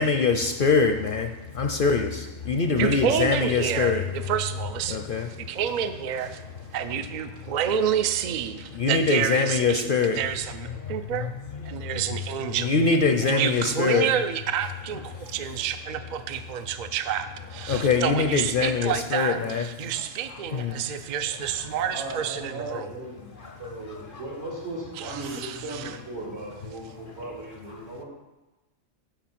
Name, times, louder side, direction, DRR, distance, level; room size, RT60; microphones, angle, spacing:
voice 1, 0.0-4.0 4.9-5.5 8.5-10.2 10.8-10.9 11.6-12.1 12.5-14.1 15.2-15.3 17.7-19.9 20.5-20.8 21.5-21.6 23.4-23.6 24.1-24.2, left 5 dB, 55° left, 4 dB, 0.6 m, -24 dB
voice 2, 2.8-5.0 5.4-6.4 6.7-11.3 11.6-12.7 13.2-22.9 25.0-26.0, right 9 dB, 60° right, 9 dB, 0.5 m, -29 dB
voice 3, 21.9-23.3 23.6-28.0, right 2 dB, 85° right, -6 dB, 3.7 m, -37 dB
6.8 x 6.0 x 7.4 m, 1.1 s
omnidirectional pair, 1.4 m